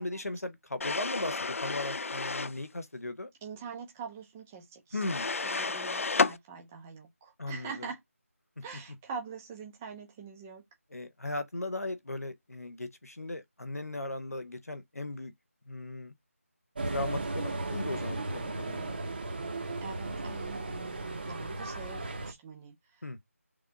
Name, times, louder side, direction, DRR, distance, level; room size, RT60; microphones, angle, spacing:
voice 1, 0.0-3.3 4.9-5.3 7.4-7.9 10.9-15.3 15.7-16.2 16.9-19.0 23.0-23.2, left 2 dB, 85° left, 0.9 m, -37 dB
sound 1, 0.8-2.6 5.0-6.4, left 4 dB, 65° left, 0.3 m, -31 dB
voice 2, 3.4-5.0 5.4-8.0 8.6-10.6 19.8-23.0, right 5 dB, 10° right, 0.5 m, -44 dB
sound 2, 16.7-22.3, right 2 dB, 40° right, 0.8 m, -35 dB
3.4 x 2.5 x 3.8 m
figure-of-eight pair, 165°, 8 cm